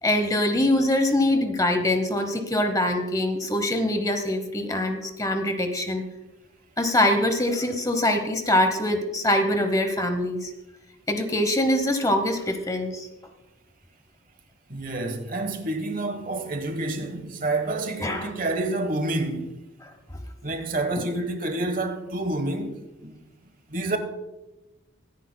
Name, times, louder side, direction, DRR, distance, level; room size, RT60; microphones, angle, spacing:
voice 1, 0.0-6.0 6.8-10.5 11.1-13.1 18.0-18.3 19.8-19.9, left 1 dB, 15° left, 0.9 m, -23 dB
voice 2, 14.7-19.6 20.4-22.8 23.0-23.2 23.7-24.0, right 2 dB, 40° right, 1.1 m, -28 dB
23.0 x 10.0 x 2.2 m
head